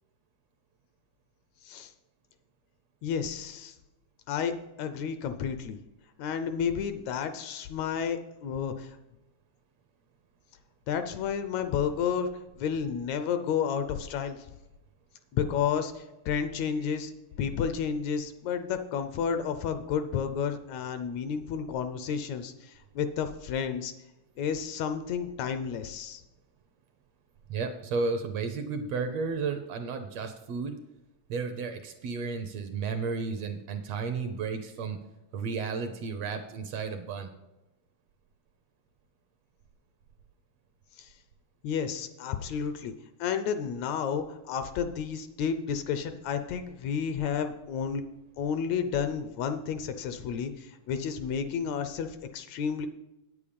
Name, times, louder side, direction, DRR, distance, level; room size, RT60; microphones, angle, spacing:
voice 1, 3.0-3.7 4.3-4.5 4.8-5.8 6.2-8.9 10.9-12.3 12.6-14.5 15.3-17.1 17.4-23.9 24.4-26.2 41.0-41.1 41.6-42.9 43.2-48.0 48.4-52.9, left 7 dB, 75° left, 9 dB, 1.8 m, -31 dB
voice 2, 27.5-30.8 31.3-35.0 35.3-37.3, right 4 dB, 70° right, 7 dB, 1.7 m, -33 dB
9.1 x 8.6 x 5.1 m, 0.97 s
omnidirectional pair, 3.5 m